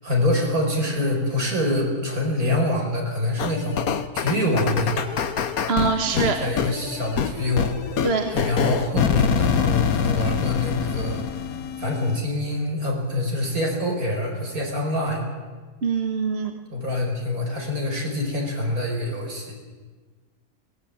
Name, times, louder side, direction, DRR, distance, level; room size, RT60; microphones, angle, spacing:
voice 1, 0.0-3.8 4.1-5.2 6.1-8.0 8.3-11.2 11.8-15.2 16.7-19.5, left 1 dB, 75° right, 1 dB, 5.9 m, -25 dB
sound 1, 3.4-12.2, left 7 dB, 75° left, 1.6 m, -26 dB
voice 2, 5.7-6.4 8.0-8.3 15.8-16.5, right 5 dB, 45° right, 5 dB, 1.7 m, -23 dB
23.0 x 18.5 x 8.9 m, 1.4 s
omnidirectional pair, 1.6 m